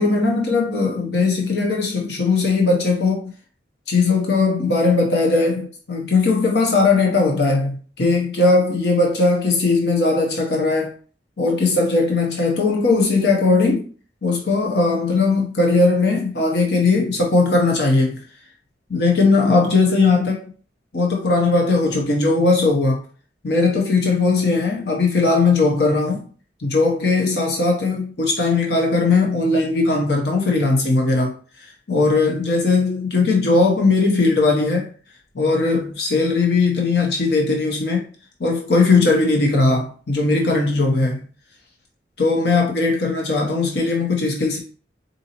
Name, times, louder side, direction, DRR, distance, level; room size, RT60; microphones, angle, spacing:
voice 1, 0.0-3.3 3.9-10.9 11.4-13.9 14.2-18.2 18.9-20.4 20.9-23.0 23.4-26.3 26.6-34.9 35.3-38.1 38.4-41.3 42.2-44.6, left 3 dB, 70° left, 0.8 m, -19 dB
4.0 x 2.6 x 2.9 m
head